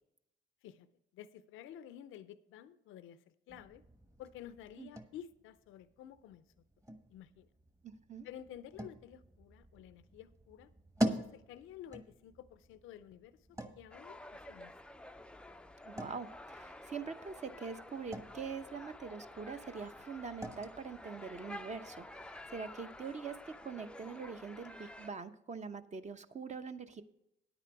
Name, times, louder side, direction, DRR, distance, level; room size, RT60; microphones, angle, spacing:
voice 1, 1.1-3.8 4.2-6.5 7.1-7.5 8.2-10.7 11.1-14.8, left 10 dB, 85° left, 13 dB, 0.5 m, -52 dB
sound 1, 3.5-23.1, equal, 15° right, 1.2 m, -45 dB
voice 2, 7.8-8.3 15.8-27.0, right 5 dB, 35° right, 9 dB, 0.8 m, -44 dB
sound 2, 13.9-25.1, left 1 dB, 5° left, 0.4 m, -51 dB
9.6 x 9.0 x 4.6 m, 0.83 s
cardioid pair, 90°, 20 cm